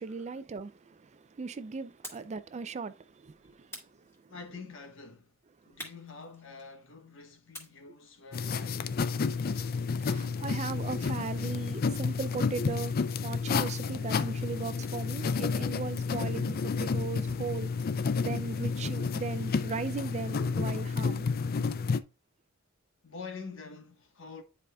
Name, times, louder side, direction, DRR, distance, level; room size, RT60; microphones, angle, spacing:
voice 1, 0.0-4.3 10.0-17.7 18.0-21.2, right 4 dB, 35° right, 0.4 m, -38 dB
sound 1, 2.0-2.4 3.7-4.6 5.8-6.9 7.5-9.8, left 1 dB, 15° left, 2.1 m, -48 dB
voice 2, 4.3-5.3 5.6-8.9 23.0-24.4, left 4 dB, 65° left, 1.3 m, -46 dB
sound 2, 8.3-22.0, left 5 dB, 45° left, 0.4 m, -31 dB
10.0 x 4.8 x 2.3 m
head